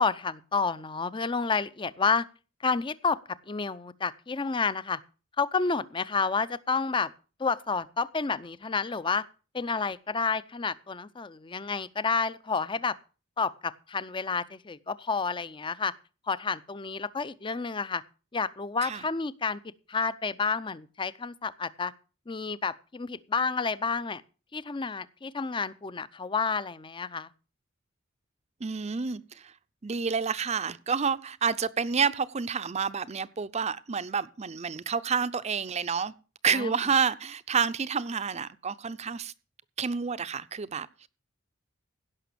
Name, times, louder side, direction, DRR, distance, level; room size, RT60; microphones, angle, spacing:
voice 1, 0.0-2.3 2.6-5.0 5.4-7.1 7.4-9.2 9.5-13.0 13.4-15.9 16.3-18.0 18.3-19.6 19.9-21.9 22.3-24.2 24.5-27.3 36.5-36.8, left 4 dB, 25° left, 0.5 m, -30 dB
voice 2, 28.6-29.5 29.8-36.1 36.4-39.3 39.8-41.1, right 6 dB, 35° right, 0.6 m, -29 dB
16.5 x 6.0 x 6.8 m
head